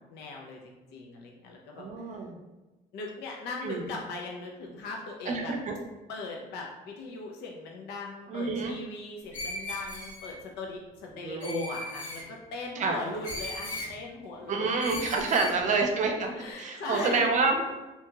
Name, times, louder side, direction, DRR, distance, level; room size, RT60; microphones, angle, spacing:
voice 1, 0.1-1.8 2.9-5.5 6.1-14.6 15.1-15.7 16.3-17.3, left 3 dB, 80° left, 0 dB, 0.5 m, -39 dB
voice 2, 1.8-2.4 3.6-3.9 5.3-5.8 8.3-8.8 11.2-11.6 12.8-13.0 14.5-17.6, right 4 dB, 45° right, 3 dB, 0.5 m, -28 dB
Screech, 9.3-10.3 11.4-12.2 13.2-13.9 14.8-15.6, left 2 dB, 50° left, 1.0 m, -37 dB
2.8 x 2.7 x 2.3 m, 1.1 s
cardioid pair, 110°, 17 cm